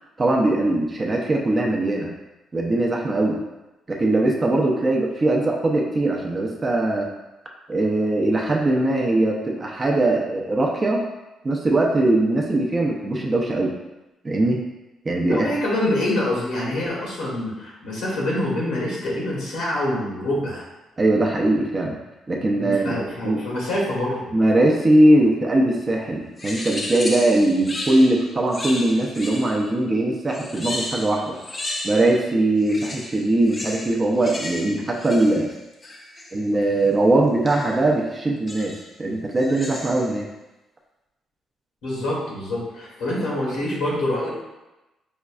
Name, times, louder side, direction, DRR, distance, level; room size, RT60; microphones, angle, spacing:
voice 1, 0.2-2.1 2.5-3.4 3.9-7.1 7.7-11.1 11.4-13.7 14.2-14.6 15.0-15.5 21.0-22.0 22.3-23.0 23.2-23.4 24.3-31.4 31.8-35.5 36.3-40.2, right 1 dB, 30° right, -1 dB, 0.5 m, -20 dB
voice 2, 15.3-20.6 22.5-24.3 41.8-44.3, left 1 dB, 90° left, -5 dB, 1.2 m, -26 dB
sound 1, 26.4-29.7 30.3-32.3 32.6-36.4 37.5-37.8 38.5-38.9 39.4-40.2, left 2 dB, 30° left, 0.5 m, -34 dB
5.1 x 2.3 x 2.4 m, 1.0 s
cardioid pair, 90°, 0 cm